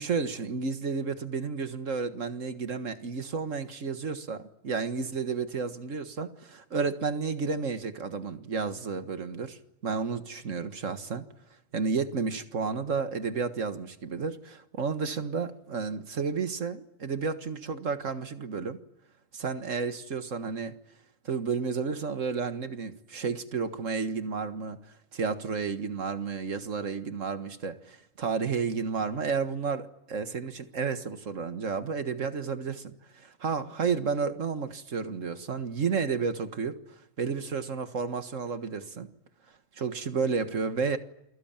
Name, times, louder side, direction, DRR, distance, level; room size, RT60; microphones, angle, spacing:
voice 1, 0.0-11.2 11.7-18.8 19.3-20.8 21.3-24.8 25.1-36.8 37.2-39.1 39.8-41.0, right 5 dB, 75° right, 9 dB, 1.9 m, -31 dB
28.5 x 22.0 x 8.9 m, 0.88 s
omnidirectional pair, 1.3 m